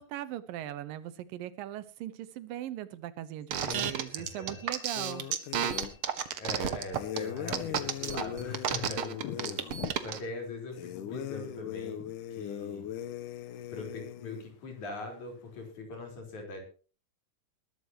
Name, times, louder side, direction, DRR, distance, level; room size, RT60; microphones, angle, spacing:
voice 1, 0.0-5.3, right 12 dB, 80° right, 14 dB, 2.8 m, -40 dB
sound 1, 3.5-10.2, right 9 dB, 60° right, 1.5 m, -31 dB
voice 2, 3.6-4.6 6.4-12.0 12.3-12.9 13.7-16.6, left 3 dB, 55° left, 3 dB, 5.7 m, -41 dB
sound 2, 3.7-8.6, left 3 dB, 10° right, 5.5 m, -59 dB
sound 3, 4.9-6.0 6.9-9.9 10.7-14.4, left 11 dB, 75° left, 2.4 m, -39 dB
20.5 x 13.0 x 3.0 m, 0.36 s
omnidirectional pair, 4.0 m